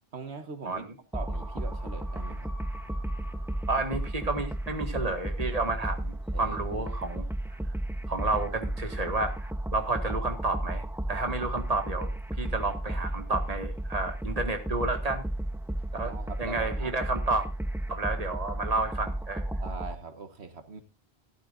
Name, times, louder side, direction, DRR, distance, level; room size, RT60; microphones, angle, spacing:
voice 1, 0.1-0.8 1.1-2.5 6.3-7.0 16.0-16.9 19.6-20.8, right 4 dB, 85° right, 8 dB, 1.7 m, -41 dB
sound 1, 1.1-19.9, right 1 dB, 5° right, 0.3 m, -33 dB
sound 2, 1.3-6.0 6.4-6.5, left 1 dB, 15° left, 5.8 m, -51 dB
voice 2, 3.7-7.3 8.1-12.1 12.4-15.2 15.9-16.1 16.4-17.5 17.9-19.5, right 3 dB, 35° right, 6 dB, 1.9 m, -31 dB
16.5 x 11.5 x 2.5 m, 0.29 s
omnidirectional pair, 1.1 m